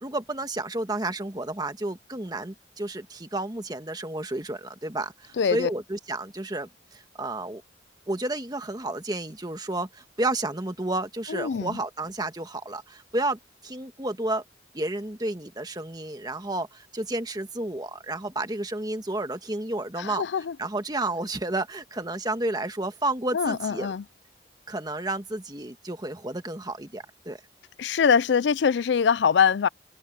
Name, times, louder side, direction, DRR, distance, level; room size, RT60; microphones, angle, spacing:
voice 1, 0.0-7.6 8.1-14.4 14.7-20.3 20.6-23.9 24.7-27.4, right 2 dB, 25° right, 1.6 m, -31 dB
voice 2, 5.4-5.7 11.3-11.8 20.0-20.6 23.3-24.0 27.8-29.7, left 6 dB, 80° left, 0.4 m, -23 dB
head